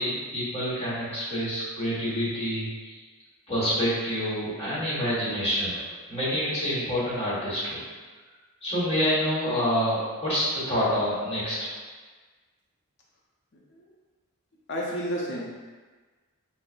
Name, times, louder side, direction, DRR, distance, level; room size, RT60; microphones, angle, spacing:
voice 1, 0.0-3.0 3.5-7.8 8.6-11.7, equal, 25° left, -11 dB, 1.3 m, -27 dB
voice 2, 14.7-15.5, equal, 50° left, -3 dB, 0.6 m, -31 dB
5.4 x 2.0 x 2.4 m, 1.4 s
head